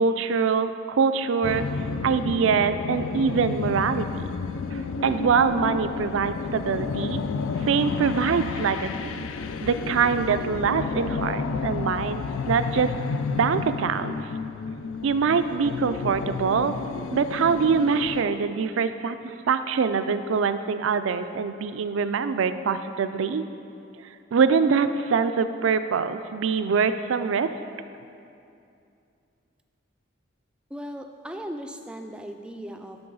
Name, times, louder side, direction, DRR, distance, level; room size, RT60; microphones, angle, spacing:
voice 1, 0.0-1.7 2.0-4.3 4.7-7.2 7.6-9.2 9.6-12.9 13.3-14.2 15.0-16.7 17.1-23.4 24.3-27.5, right 5 dB, 80° right, 11 dB, 0.4 m, -24 dB
sound 1, 1.4-18.2, left 5 dB, 80° left, 0.4 m, -31 dB
voice 2, 30.7-33.0, equal, 5° right, 5 dB, 0.3 m, -37 dB
11.5 x 3.9 x 5.4 m, 2.6 s
head